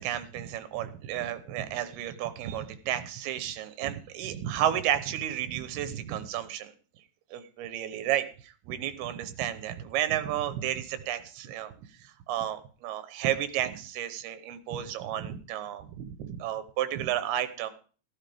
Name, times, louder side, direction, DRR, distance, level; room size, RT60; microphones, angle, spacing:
voice 1, 0.0-6.7 7.3-11.7 12.0-17.7, right 11 dB, 85° right, 11 dB, 2.9 m, -32 dB
13.5 x 13.0 x 3.5 m, 0.39 s
omnidirectional pair, 4.4 m